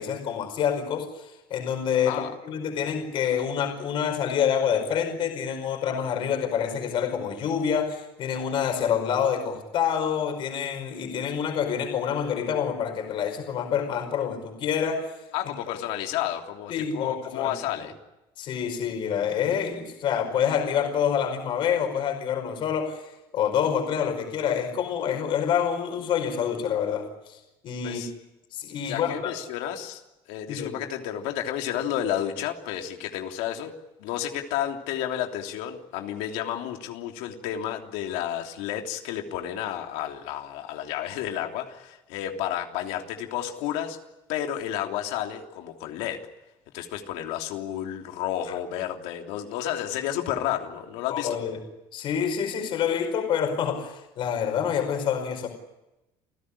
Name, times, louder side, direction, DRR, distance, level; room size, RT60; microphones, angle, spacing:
voice 1, 0.0-15.1 16.7-17.6 18.4-23.0 23.3-27.4 27.6-28.0 28.5-29.3 30.5-30.8 48.5-48.6 51.1-51.6 51.9-55.5, left 8 dB, 50° left, 5 dB, 5.1 m, -27 dB
voice 2, 15.3-17.9 27.8-28.1 28.8-30.0 30.3-33.7 34.0-44.0 44.3-46.2 46.7-51.4, left 11 dB, 85° left, 3 dB, 3.2 m, -31 dB
28.5 x 16.0 x 10.0 m, 0.96 s
cardioid pair, 150°, 11 cm